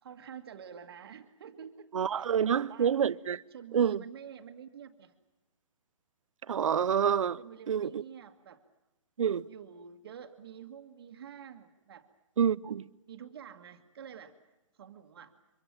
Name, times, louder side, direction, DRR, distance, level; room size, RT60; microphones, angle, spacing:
voice 1, 0.0-2.9 3.5-5.1 7.4-8.6 9.2-12.1 13.1-14.4 14.8-15.4, right 8 dB, 50° right, 1.8 m, -48 dB
voice 2, 1.9-3.4 3.7-4.0 6.5-7.4 7.7-8.0 9.2-9.4 12.4-12.8, right 8 dB, 75° right, 0.8 m, -27 dB
25.0 x 23.0 x 7.4 m
hypercardioid pair, 170°, 17 cm